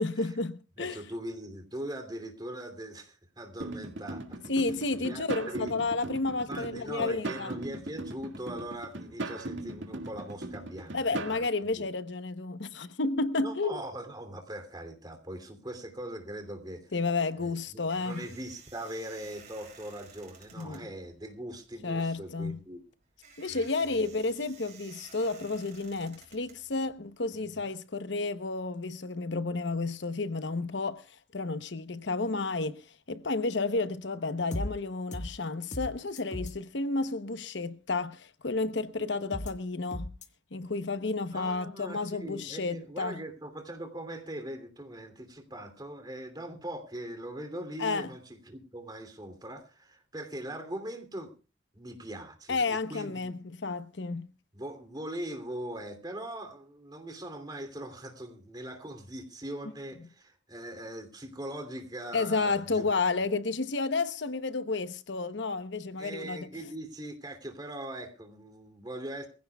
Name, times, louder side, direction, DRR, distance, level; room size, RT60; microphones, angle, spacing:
voice 1, 0.0-1.0 4.5-7.5 10.9-13.8 16.9-18.2 20.6-20.9 21.8-22.6 23.4-40.1 40.5-43.1 47.8-48.1 52.5-54.3 62.1-66.5, left 3 dB, 70° left, 0.9 m, -31 dB
voice 2, 0.8-4.4 5.0-5.8 6.5-11.4 11.8-11.9 13.4-16.9 17.4-22.8 23.5-24.1 27.4-27.7 41.3-51.3 51.7-53.3 54.5-62.9 66.0-69.3, right 1 dB, 20° right, 2.9 m, -41 dB
sound 1, 3.6-11.4, right 2 dB, 80° right, 2.0 m, -39 dB
sound 2, 17.4-27.3, right 6 dB, 40° right, 6.0 m, -54 dB
sound 3, 34.5-34.7 35.1-35.3 35.7-35.9 36.2-36.5 39.3-39.5 39.9-40.3, left 1 dB, 40° left, 1.6 m, -35 dB
23.0 x 16.0 x 2.3 m
head